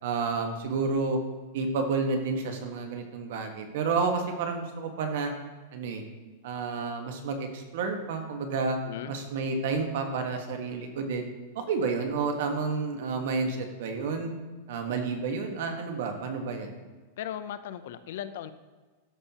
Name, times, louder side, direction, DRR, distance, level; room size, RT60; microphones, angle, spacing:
voice 1, 0.0-1.2 1.5-5.3 5.7-6.0 6.4-8.8 9.1-11.3 11.5-14.3 14.7-16.7, right 4 dB, 60° right, 5 dB, 1.4 m, -30 dB
voice 2, 17.2-18.5, left 10 dB, 65° left, 11 dB, 0.5 m, -37 dB
12.5 x 5.6 x 2.9 m, 1.3 s
supercardioid pair, 160°, 0 cm